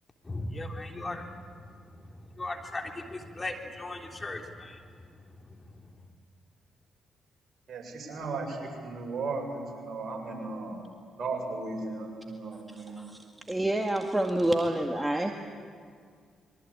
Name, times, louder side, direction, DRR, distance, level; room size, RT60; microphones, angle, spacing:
voice 1, 0.2-4.9 5.4-5.9, left 2 dB, 30° left, 2 dB, 3.4 m, -38 dB
voice 2, 7.7-10.8 11.1-13.0, right 3 dB, 55° right, 1 dB, 7.3 m, -36 dB
voice 3, 12.8-13.2 13.5-15.3, right 1 dB, 15° right, 3 dB, 2.0 m, -28 dB
24.5 x 23.0 x 8.8 m, 2.1 s
hypercardioid pair, 45°, 0 cm